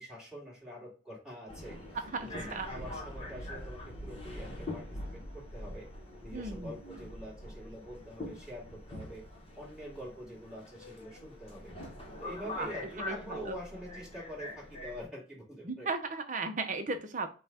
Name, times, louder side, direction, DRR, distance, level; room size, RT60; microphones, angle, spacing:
voice 1, 0.0-1.8 2.2-5.9 6.2-9.2 9.6-11.7 12.2-15.9, equal, 5° right, -5 dB, 2.0 m, -45 dB
Subway metro underground, 1.5-15.0, left 1 dB, 30° left, 1.0 m, -44 dB
voice 2, 2.1-2.7 6.3-6.7 12.6-12.7 13.0-13.6 15.6-17.3, right 3 dB, 40° right, 7 dB, 0.7 m, -36 dB
5.5 x 2.3 x 4.2 m, 0.37 s
head